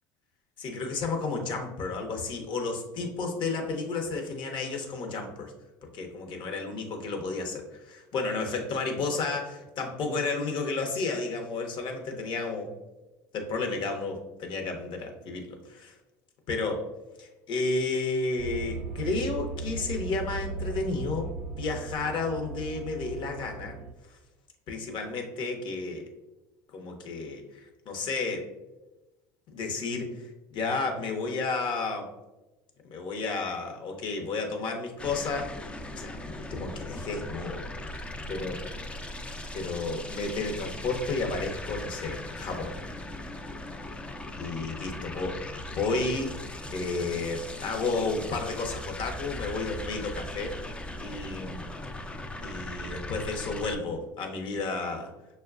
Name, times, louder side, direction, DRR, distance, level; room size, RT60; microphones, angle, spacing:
voice 1, 0.6-5.5 5.9-12.7 13.3-15.9 16.5-16.8 17.2-23.8 24.7-26.1 26.7-28.5 29.5-30.3 30.5-32.1 32.9-35.5 35.9-38.0 38.3-38.6 39.5-42.8 44.4-45.4 45.7-46.3 46.7-50.6 51.0-51.6 52.4-55.1, left 3 dB, 50° left, 4 dB, 0.8 m, -32 dB
sound 1, 18.4-23.9, right 4 dB, 70° right, 0.4 m, -37 dB
sound 2, 35.0-53.8, left 1 dB, 10° left, 0.4 m, -39 dB
6.3 x 2.2 x 2.3 m, 1.0 s
hypercardioid pair, 75°, 10 cm